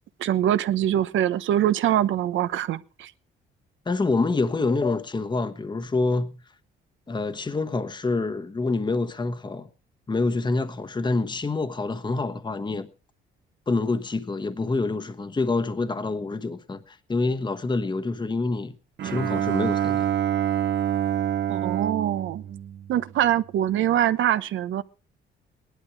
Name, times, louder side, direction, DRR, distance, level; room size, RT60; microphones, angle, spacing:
voice 1, 0.2-3.1 21.5-22.4 22.9-24.8, right 11 dB, 75° right, 1.0 m, -23 dB
voice 2, 3.8-6.4 7.1-9.7 10.1-12.9 13.7-18.7 19.0-20.1, left 3 dB, 20° left, 1.2 m, -26 dB
Bowed string instrument, 19.0-23.3, right 10 dB, 60° right, 1.3 m, -27 dB
18.0 x 11.5 x 4.7 m
cardioid pair, 90°, 20 cm